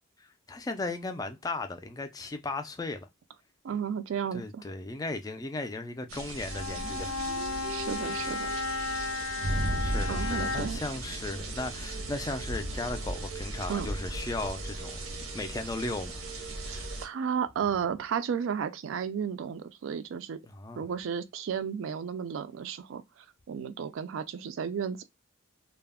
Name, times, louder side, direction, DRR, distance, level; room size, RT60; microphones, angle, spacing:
voice 1, 0.5-3.1 4.3-7.1 9.8-15.0 15.3-16.2 20.5-20.8, left 2 dB, 15° left, 0.3 m, -36 dB
voice 2, 3.6-4.6 7.7-8.5 10.1-10.8 13.7-13.9 16.6-20.4 20.8-23.0 23.5-25.0, right 7 dB, 70° right, 0.3 m, -33 dB
sound 1, 6.1-17.1, right 1 dB, 90° right, 0.7 m, -36 dB
Bowed string instrument, 6.5-10.9, left 3 dB, 85° left, 0.4 m, -34 dB
2.3 x 2.0 x 3.4 m
head